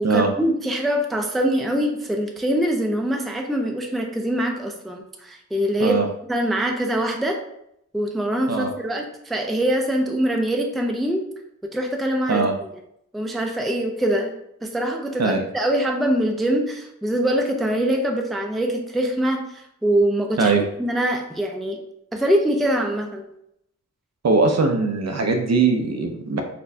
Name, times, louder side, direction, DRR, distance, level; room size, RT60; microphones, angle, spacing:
voice 1, 0.0-6.0 6.3-7.4 7.9-11.2 11.6-12.4 13.1-14.3 14.6-21.8 22.1-23.2, right 1 dB, ahead, 3 dB, 0.3 m, -23 dB
voice 2, 24.2-26.4, right 4 dB, 60° right, 4 dB, 0.5 m, -20 dB
4.2 x 2.1 x 2.6 m, 0.76 s
wide cardioid pair, 90°, 31 cm